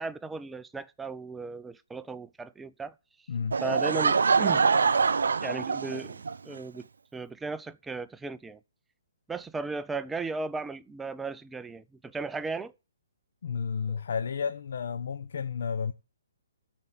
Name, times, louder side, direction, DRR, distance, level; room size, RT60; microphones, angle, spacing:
voice 1, 0.0-2.9 3.6-4.7 5.4-6.2 6.4-6.9 7.1-8.6 9.3-12.7, right 3 dB, 10° right, 0.4 m, -36 dB
Laughter / Crowd, 3.5-6.3, right 5 dB, 75° right, 0.5 m, -24 dB
voice 2, 13.4-15.9, left 6 dB, 65° left, 0.8 m, -32 dB
13.0 x 4.6 x 7.4 m
hypercardioid pair, 140°, 0 cm